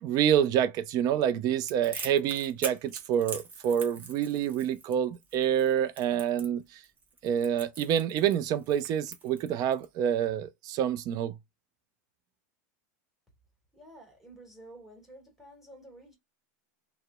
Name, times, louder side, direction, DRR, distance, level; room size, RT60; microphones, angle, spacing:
voice 1, 0.0-6.8 7.2-11.4, right 9 dB, 45° right, 0.5 m, -27 dB
Crackle, 1.6-9.9, right 4 dB, 20° right, 0.9 m, -43 dB
voice 2, 13.7-16.1, right 1 dB, ahead, 1.6 m, -51 dB
2.6 x 2.1 x 2.3 m
supercardioid pair, 120°, 9 cm